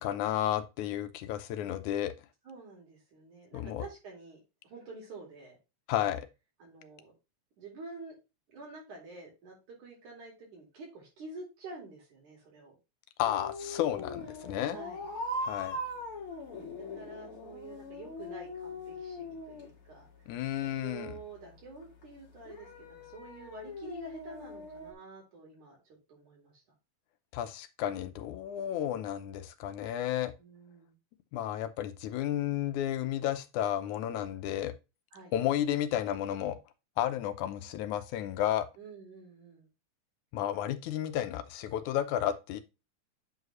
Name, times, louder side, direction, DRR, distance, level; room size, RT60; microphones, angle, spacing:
voice 1, 0.0-2.1 3.5-3.8 5.9-6.3 13.2-14.8 15.4-15.8 20.3-21.1 27.3-30.3 31.3-34.7 35.3-36.6 37.0-38.7 40.3-42.6, left 11 dB, 90° left, 2.2 m, -32 dB
voice 2, 2.4-5.6 6.6-7.1 7.6-8.2 8.5-12.8 14.7-15.0 16.8-20.1 20.6-26.6 30.4-31.0 35.1-35.3 38.8-39.7, right 3 dB, 80° right, 5.3 m, -48 dB
sound 1, 13.2-24.9, left 1 dB, 50° left, 2.5 m, -42 dB
8.6 x 4.8 x 3.2 m
omnidirectional pair, 3.4 m